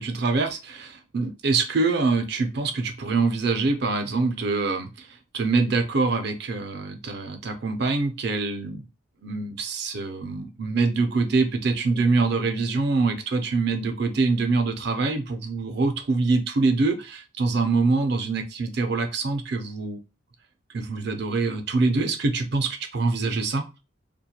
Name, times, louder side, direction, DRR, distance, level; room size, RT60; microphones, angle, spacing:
voice 1, 0.0-8.9 9.2-20.0 20.7-23.7, right 3 dB, 55° right, 6 dB, 0.4 m, -25 dB
2.8 x 2.2 x 2.2 m, 0.28 s
head